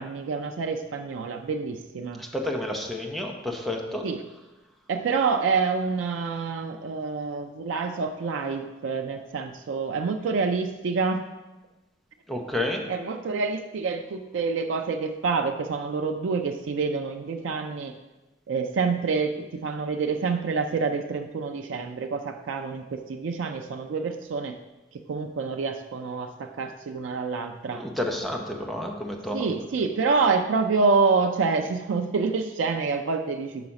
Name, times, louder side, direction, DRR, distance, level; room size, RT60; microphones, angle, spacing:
voice 1, 0.0-2.2 4.0-4.2 4.9-11.2 12.9-18.0 18.5-24.6 24.9-27.8 29.3-33.7, right 4 dB, 90° right, 5 dB, 0.4 m, -27 dB
voice 2, 2.2-4.1 12.3-12.8 27.7-29.5, left 1 dB, ahead, 1 dB, 0.6 m, -30 dB
5.9 x 4.8 x 5.2 m, 1.1 s
head